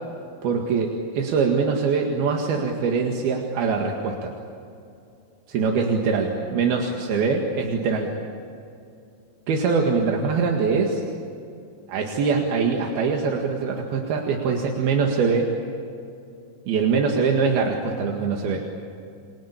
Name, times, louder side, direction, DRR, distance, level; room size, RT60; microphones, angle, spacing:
voice 1, 0.4-4.3 5.5-8.1 9.5-11.0 11.9-15.5 16.7-18.6, right 5 dB, 80° right, 1 dB, 3.9 m, -23 dB
29.5 x 23.5 x 8.5 m, 2.5 s
omnidirectional pair, 4.3 m